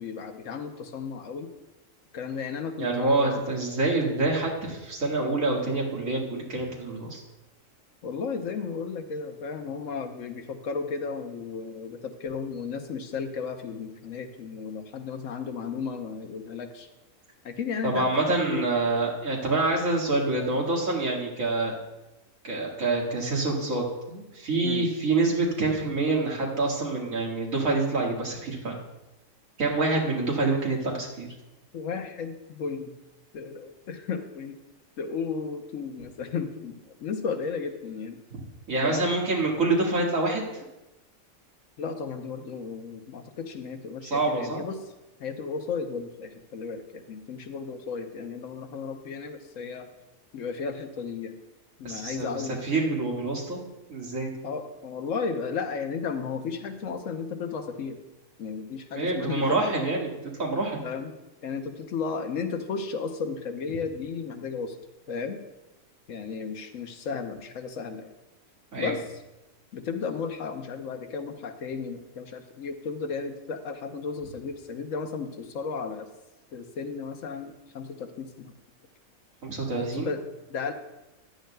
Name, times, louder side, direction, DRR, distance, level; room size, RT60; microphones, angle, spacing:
voice 1, 0.0-1.5 2.1-3.4 8.0-16.9 17.4-18.7 24.6-24.9 31.7-32.9 33.3-34.6 35.0-38.2 38.8-39.1 41.8-44.8 45.2-49.9 50.3-51.4 51.8-52.6 54.4-58.0 58.4-59.5 60.8-61.1 61.4-64.8 65.1-65.4 66.1-68.1 68.8-69.0 69.7-76.1 76.5-78.5 79.9-80.2 80.5-80.7, left 5 dB, 70° left, 7 dB, 1.2 m, -34 dB
voice 2, 2.8-7.2 17.8-21.8 22.4-28.8 29.6-31.3 38.3-38.4 38.7-40.7 44.0-44.6 51.8-53.6 53.9-54.5 58.9-60.1 60.4-60.8 68.7-69.0 79.4-80.1, right 2 dB, 80° right, -2 dB, 2.3 m, -26 dB
14.0 x 10.5 x 2.3 m, 0.99 s
omnidirectional pair, 1.4 m